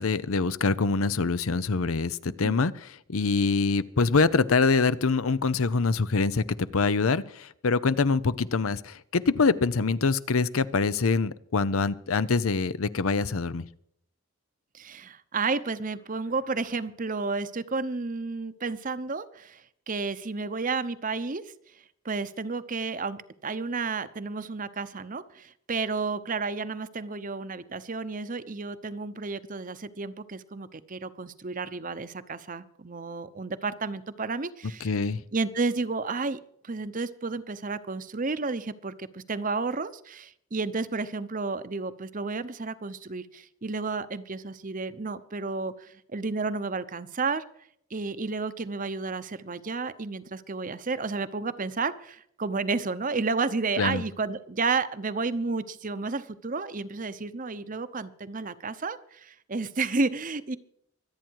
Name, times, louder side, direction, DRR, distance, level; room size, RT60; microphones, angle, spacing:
voice 1, 0.0-6.4 6.7-13.6 34.8-35.2 53.8-54.0, left 4 dB, 80° left, 16 dB, 0.7 m, -25 dB
voice 2, 2.3-2.6 14.7-21.5 22.0-34.9 35.3-47.4 47.9-60.6, right 4 dB, 40° right, 13 dB, 0.8 m, -32 dB
24.5 x 9.0 x 4.7 m, 0.69 s
head